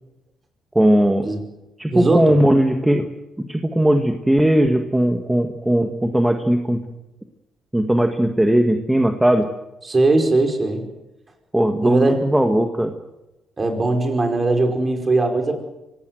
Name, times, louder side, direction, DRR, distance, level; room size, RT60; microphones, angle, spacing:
voice 1, 0.8-1.3 1.8-3.1 3.5-6.8 7.7-9.5 11.5-12.9, right 1 dB, 10° right, 5 dB, 1.7 m, -18 dB
voice 2, 1.9-2.4 9.8-10.8 11.8-12.3 13.6-15.6, right 2 dB, 30° right, 5 dB, 5.1 m, -19 dB
24.0 x 18.5 x 7.9 m, 0.97 s
cardioid pair, 90°, 0 cm